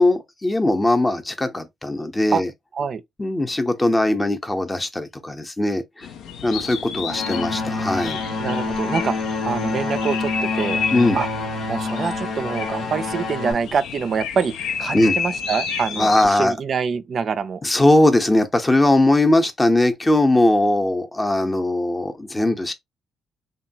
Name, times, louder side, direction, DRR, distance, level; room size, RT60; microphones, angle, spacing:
voice 1, 0.0-2.5 3.2-6.1 6.4-8.2 10.9-11.2 14.9-15.2 16.0-16.6 17.6-22.7, left 1 dB, 15° left, 0.6 m, -19 dB
sound 1, 6.0-16.3, left 6 dB, 85° left, 0.4 m, -31 dB
sound 2, 7.1-13.5, left 3 dB, 60° left, 0.8 m, -27 dB
voice 2, 8.4-9.2 9.5-10.8 11.1-11.3 11.7-17.6, right 6 dB, 50° right, 0.4 m, -25 dB
3.0 x 2.2 x 2.6 m
cardioid pair, 90°, 0 cm